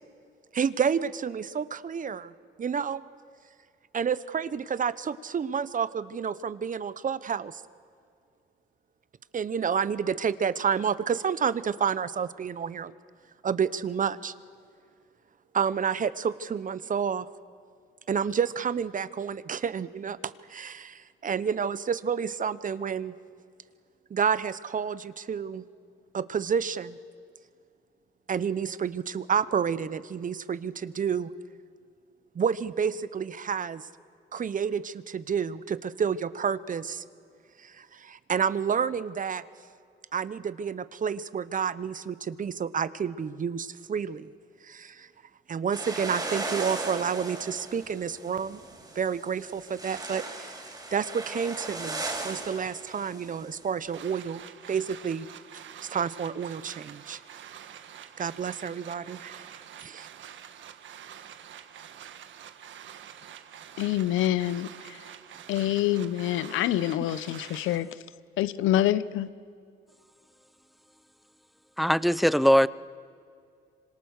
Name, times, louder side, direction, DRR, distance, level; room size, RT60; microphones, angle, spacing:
voice 1, 0.5-2.3 2.6-3.0 3.9-7.6 9.3-12.9 13.4-14.3 15.5-17.3 18.1-23.1 24.1-25.6 26.1-27.0 28.3-31.3 32.3-33.8 34.3-37.0 37.6-39.4 40.1-44.3 44.6-45.1 45.5-48.6 48.9-50.6 50.9-54.4 54.7-55.3 55.9-57.2 58.2-59.5 59.8-60.1, right 7 dB, 40° right, 1.0 m, -29 dB
sound 1, 45.7-54.1, right 2 dB, 20° right, 4.8 m, -37 dB
sound 2, 53.9-67.8, right 9 dB, 70° right, 1.5 m, -47 dB
voice 2, 63.8-65.1 65.5-68.1 68.4-69.3, left 13 dB, 90° left, 0.8 m, -26 dB
voice 3, 71.8-72.7, equal, ahead, 0.6 m, -20 dB
26.0 x 25.5 x 6.6 m
cardioid pair, 90°, 20 cm